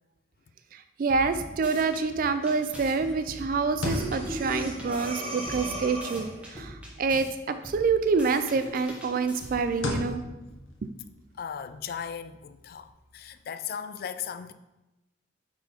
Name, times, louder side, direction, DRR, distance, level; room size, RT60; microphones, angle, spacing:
voice 1, 0.7-10.2 10.8-10.9, right 4 dB, 45° right, 0.3 m, -27 dB
sound 1, 1.1-2.0 2.5-5.1 5.4-7.3 7.6-9.8, equal, 5° right, 1.1 m, -43 dB
sound 2, 1.2-7.6 8.0-13.4, left 1 dB, 80° left, 1.2 m, -40 dB
Breathing, 3.9-6.5, right 1 dB, 30° right, 1.0 m, -36 dB
voice 2, 11.4-14.5, left 8 dB, 50° left, 0.3 m, -37 dB
5.6 x 4.3 x 4.3 m
head